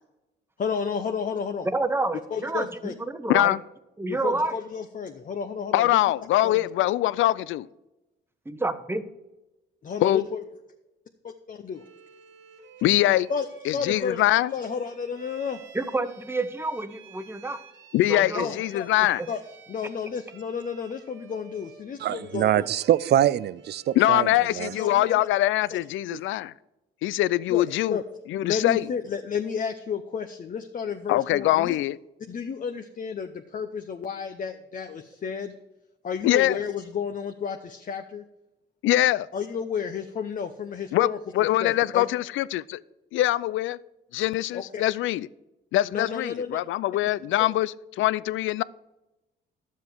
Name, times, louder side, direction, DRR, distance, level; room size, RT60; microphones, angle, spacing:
voice 1, 0.6-1.7 2.3-2.9 4.1-6.0 6.4-6.7 9.8-10.4 11.5-11.8 13.3-14.2 14.5-15.6 18.3-18.9 19.3-19.4 19.7-22.7 24.7-25.3 25.7-25.8 27.5-28.0 28.4-31.8 32.3-35.5 36.0-38.2 39.3-41.2 41.6-42.0 44.5-44.8 45.9-46.6 47.4-47.5, left 6 dB, 40° left, 0.7 m, -32 dB
voice 2, 1.7-3.5 4.0-4.6 8.5-9.0 15.7-17.6 18.1-18.5, right 2 dB, 10° right, 0.9 m, -29 dB
voice 3, 5.7-7.6 10.0-10.2 12.8-13.3 13.7-14.5 17.9-19.2 24.0-26.5 27.0-28.0 28.3-28.8 31.1-32.0 36.2-36.6 38.8-39.3 40.9-41.1 41.4-42.8 43.1-43.8 44.1-45.3 45.7-47.7 48.0-48.6, left 15 dB, 80° left, 0.4 m, -23 dB
Bowed string instrument, 11.7-24.9, right 7 dB, 80° right, 2.1 m, -52 dB
voice 4, 22.0-24.8 26.1-26.2, right 11 dB, 55° right, 0.4 m, -24 dB
11.0 x 7.4 x 4.6 m
cardioid pair, 90°, 20 cm